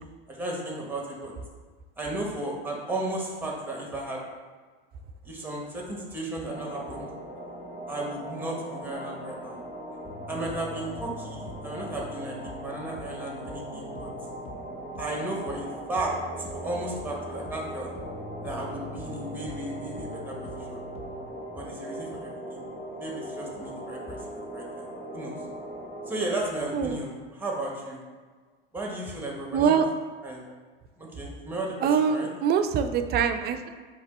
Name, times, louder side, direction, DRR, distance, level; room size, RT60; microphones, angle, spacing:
voice 1, 0.3-1.3 2.0-4.2 5.2-7.1 7.9-9.6 10.3-14.1 15.0-16.1 16.4-17.9 18.4-20.8 21.6-22.7 23.0-25.4 26.1-28.0 28.7-29.7 30.2-30.5 31.0-32.3, right 2 dB, 5° right, -2 dB, 1.2 m, -34 dB
sound 1, 6.5-26.3, right 1 dB, 75° left, 1.4 m, -39 dB
sound 2, 10.0-21.3, left 1 dB, 20° left, 0.7 m, -44 dB
voice 2, 29.5-29.9 31.8-33.7, right 7 dB, 35° right, 8 dB, 0.4 m, -24 dB
4.0 x 3.0 x 4.2 m, 1.5 s
hypercardioid pair, 90°, 30 cm